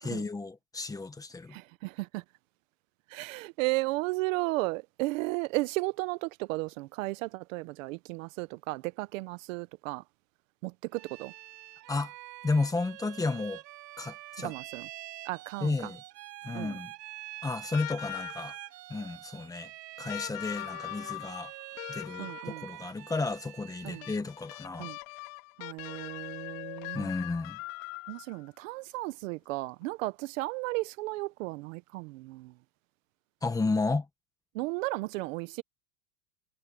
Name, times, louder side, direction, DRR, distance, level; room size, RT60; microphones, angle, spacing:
voice 1, 0.0-1.6 11.9-12.1 12.4-13.6 14.0-14.5 15.6-16.0 16.4-16.9 17.4-18.5 18.9-19.7 20.0-21.5 21.9-24.9 26.9-27.6 33.4-34.1, left 3 dB, 5° left, 1.2 m, -32 dB
voice 2, 1.5-2.2 3.1-10.0 10.6-11.3 14.4-14.9 15.3-15.7 16.5-16.8 22.2-22.6 23.8-24.0 24.8-25.0 25.6-27.1 28.1-32.5 34.5-35.6, right 22 dB, 50° right, 0.8 m, -34 dB
Bowed string instrument, 10.9-24.3, right 18 dB, 75° right, 7.4 m, -46 dB
sound 1, 17.7-18.7 20.1-22.7 24.0-28.5 29.8-29.9, left 23 dB, 50° left, 2.4 m, -41 dB
supercardioid pair, 165°, 50 cm